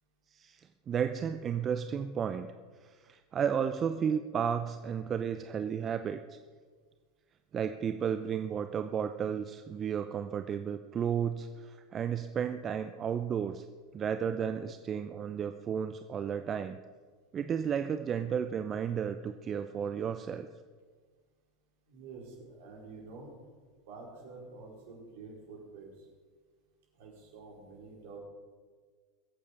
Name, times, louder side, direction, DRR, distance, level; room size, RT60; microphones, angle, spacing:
voice 1, 0.3-2.5 2.9-6.4 7.5-13.6 13.9-16.8 17.3-20.5, right 7 dB, 35° right, 9 dB, 0.7 m, -33 dB
voice 2, 21.9-23.3 23.9-26.1 26.9-28.2, right 3 dB, 65° right, -1 dB, 4.8 m, -48 dB
21.0 x 8.7 x 5.4 m, 1.5 s
hypercardioid pair, 85°, 0 cm